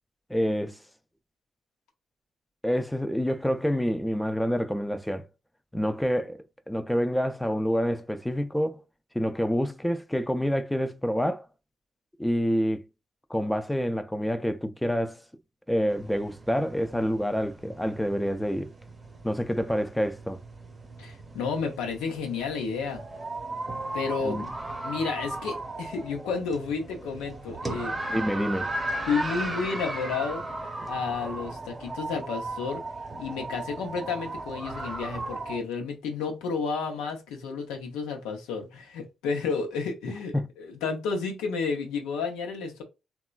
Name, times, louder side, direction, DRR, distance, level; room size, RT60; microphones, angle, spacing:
voice 1, 0.3-0.8 2.6-5.3 5.7-8.8 9.1-11.5 12.2-12.8 13.3-15.2 15.7-18.7 19.2-20.4 24.2-24.4 28.1-28.7 40.3-40.5, equal, 5° left, 0.3 m, -27 dB
sound 1, 15.9-35.6, right 2 dB, 25° right, 0.8 m, -36 dB
voice 2, 21.0-23.0 23.9-24.5 24.8-28.0 29.1-30.4 30.9-32.8 33.2-42.8, left 5 dB, 90° left, 0.6 m, -31 dB
2.9 x 2.2 x 2.3 m
supercardioid pair, 55°, 0 cm